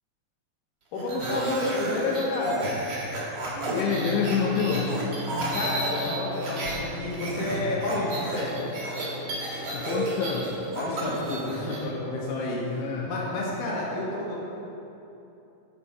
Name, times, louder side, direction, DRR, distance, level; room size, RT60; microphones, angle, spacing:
voice 1, 0.9-2.7 5.5-8.7 10.7-12.8 13.1-14.4, left 2 dB, 60° left, -4 dB, 2.9 m, -30 dB
sound 1, 1.0-6.8 7.1-11.8, right 1 dB, 50° right, 1.9 m, -32 dB
sound 2, 3.5-13.7, left 3 dB, 70° right, 1.0 m, -40 dB
voice 2, 3.7-5.1 9.6-10.5 12.6-13.1, left 6 dB, 80° left, -2 dB, 2.8 m, -27 dB
8.8 x 6.8 x 5.0 m, 2.9 s
omnidirectional pair, 4.7 m